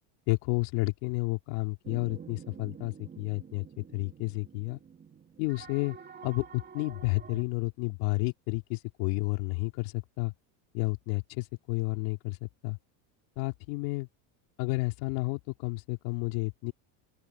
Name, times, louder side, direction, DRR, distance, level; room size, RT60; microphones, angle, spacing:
voice 1, 0.3-3.7 3.9-4.8 5.4-6.0 6.2-10.3 10.7-12.8 13.4-14.1 14.6-16.7, left 25 dB, 75° left, 3.7 m, -31 dB
sound 1, 1.8-7.4, right 7 dB, 20° right, 3.2 m, -48 dB
open air
cardioid pair, 140°, 44 cm